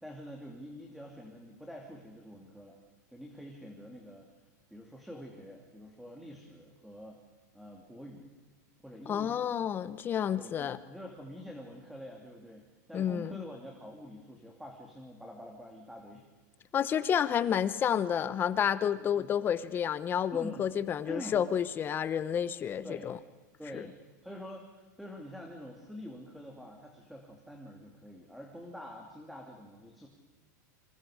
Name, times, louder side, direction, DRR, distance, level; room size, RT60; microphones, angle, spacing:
voice 1, 0.0-2.8 3.1-4.3 4.7-7.2 7.5-8.3 8.8-9.4 10.3-16.3 19.0-19.3 20.3-20.7 21.1-21.4 22.8-23.1 23.6-30.1, equal, ahead, 1 dB, 2.6 m, -46 dB
voice 2, 9.1-10.8 12.9-13.3 16.7-23.2 23.7-23.8, left 8 dB, 20° left, 15 dB, 0.8 m, -30 dB
28.0 x 26.5 x 5.0 m, 1.3 s
supercardioid pair, 150°, 10 cm